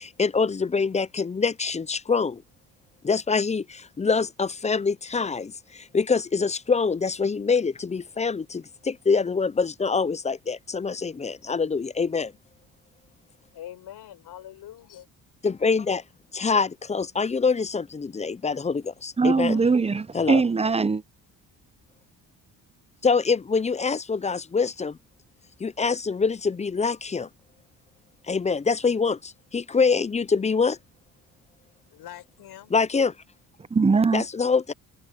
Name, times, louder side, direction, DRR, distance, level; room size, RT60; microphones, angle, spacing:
voice 1, 0.0-2.4 3.0-12.3 15.4-16.0 16.3-19.6 20.1-20.4 23.0-25.0 25.6-27.3 28.3-30.8 32.7-33.1 34.1-34.7, left 5 dB, 20° left, 0.5 m, -25 dB
voice 2, 13.5-15.1 19.2-19.8 31.9-32.7, left 12 dB, 75° left, 4.6 m, -44 dB
voice 3, 19.2-21.0 33.7-34.2, right 4 dB, 15° right, 0.7 m, -21 dB
cardioid pair, 100°, 39 cm